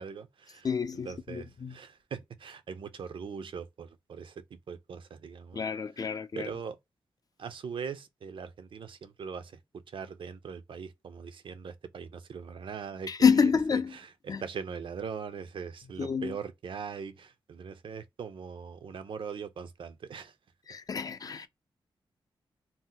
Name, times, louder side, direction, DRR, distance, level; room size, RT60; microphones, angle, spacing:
voice 1, 0.0-5.6 6.3-6.8 7.4-20.4 21.3-21.5, right 6 dB, 65° right, 0.4 m, -41 dB
voice 2, 0.6-1.7 5.5-6.5 13.1-13.9 14.3-14.4 16.0-16.3 20.7-21.5, left 6 dB, 40° left, 0.3 m, -28 dB
2.6 x 2.1 x 3.7 m
cardioid pair, 90°, 9 cm